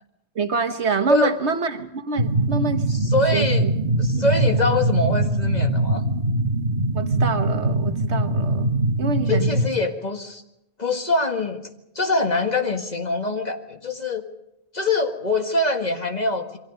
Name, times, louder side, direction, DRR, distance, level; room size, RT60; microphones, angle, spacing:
voice 1, 0.4-3.0 3.3-3.7 4.1-4.3 6.9-8.7 9.0-9.6, right 3 dB, 85° right, 8 dB, 1.7 m, -26 dB
sound 1, 2.2-9.7, right 1 dB, 50° right, 1.6 m, -22 dB
voice 2, 2.9-3.7 4.0-6.0 9.3-10.4 10.8-11.6 12.0-14.3 14.7-16.6, left 2 dB, 40° left, 5 dB, 1.9 m, -24 dB
28.5 x 23.0 x 5.3 m, 0.84 s
omnidirectional pair, 1.1 m